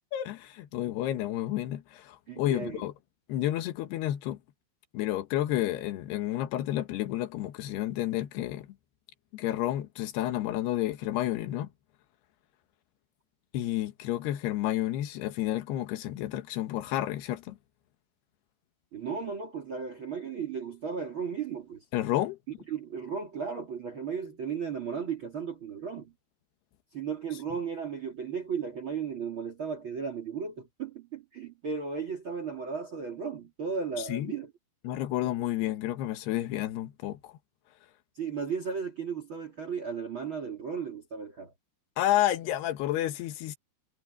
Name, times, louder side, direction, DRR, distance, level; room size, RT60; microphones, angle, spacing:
voice 1, 0.1-2.9 3.3-4.4 4.9-8.7 9.3-11.7 13.5-17.6 21.9-22.4 34.0-34.3 34.9-37.3 42.0-43.6, left 13 dB, 80° left, 3.4 m, -30 dB
voice 2, 2.3-2.8 18.9-21.8 22.7-26.1 26.9-34.5 35.2-35.3 38.1-41.5, right 6 dB, 35° right, 3.0 m, -35 dB
omnidirectional pair, 4.7 m